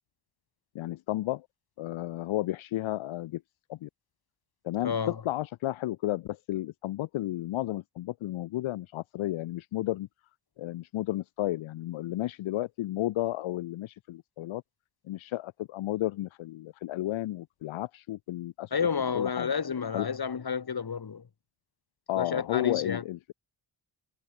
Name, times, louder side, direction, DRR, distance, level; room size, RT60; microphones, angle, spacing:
voice 1, 0.7-1.5 1.8-3.4 3.7-3.9 4.6-10.1 10.6-14.6 15.1-18.7 19.1-19.5 19.9-20.1 22.1-23.3, left 15 dB, 80° left, 0.6 m, -32 dB
voice 2, 4.8-5.2 18.7-21.2 22.1-23.0, left 6 dB, 50° left, 3.1 m, -30 dB
cardioid pair, 70°, 47 cm